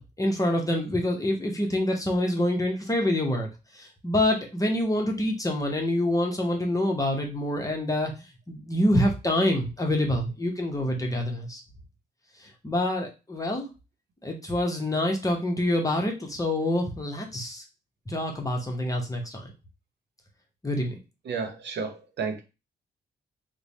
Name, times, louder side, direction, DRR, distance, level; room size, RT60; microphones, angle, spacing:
voice 1, 0.0-3.5 3.7-8.1 8.5-11.6 12.6-13.7 14.2-17.6 18.1-19.5 20.6-21.0, left 1 dB, 20° left, 0.9 m, -26 dB
voice 2, 21.2-22.4, right 5 dB, 80° right, 0.8 m, -32 dB
3.2 x 2.2 x 4.0 m
cardioid pair, 90°, 18 cm